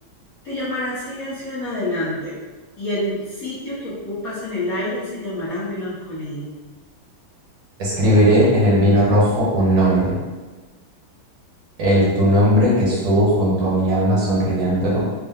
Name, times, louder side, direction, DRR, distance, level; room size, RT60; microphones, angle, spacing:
voice 1, 0.4-2.4 2.8-6.5, left 1 dB, 55° left, -11 dB, 1.1 m, -27 dB
voice 2, 7.8-10.2 11.8-15.1, equal, 60° right, -6 dB, 1.5 m, -17 dB
4.2 x 2.1 x 3.5 m, 1.3 s
omnidirectional pair, 2.4 m